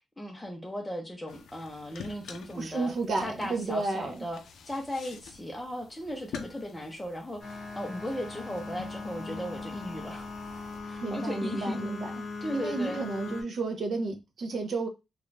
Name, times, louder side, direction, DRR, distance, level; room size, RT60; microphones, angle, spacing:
voice 1, 0.2-2.9 3.2-4.4 4.7-10.3 10.8-12.0 12.4-13.1, left 1 dB, 10° left, 0.5 m, -37 dB
sound 1, 1.3-10.8, left 6 dB, 85° left, 0.4 m, -49 dB
voice 2, 2.6-4.3 11.0-12.1 12.5-14.9, right 3 dB, 50° right, 0.5 m, -32 dB
sound 2, 7.4-13.4, left 3 dB, 40° left, 0.7 m, -39 dB
2.5 x 2.2 x 3.1 m
wide cardioid pair, 160°, 0 cm